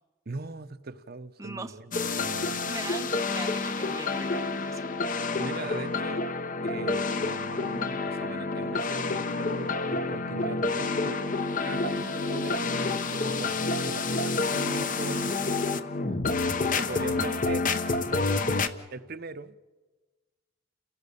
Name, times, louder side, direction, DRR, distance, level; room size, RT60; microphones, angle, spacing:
voice 1, 0.3-2.7 5.4-6.2 6.6-15.6 16.6-17.7 18.0-18.5 18.9-19.6, right 3 dB, 50° right, 11 dB, 0.8 m, -41 dB
voice 2, 1.4-1.8 2.2-4.9 11.9-12.3 16.9-17.5, right 2 dB, 15° right, 7 dB, 0.6 m, -41 dB
sound 1, 1.9-18.7, left 3 dB, 45° left, 0.9 m, -29 dB
30.0 x 17.0 x 6.9 m, 1.3 s
head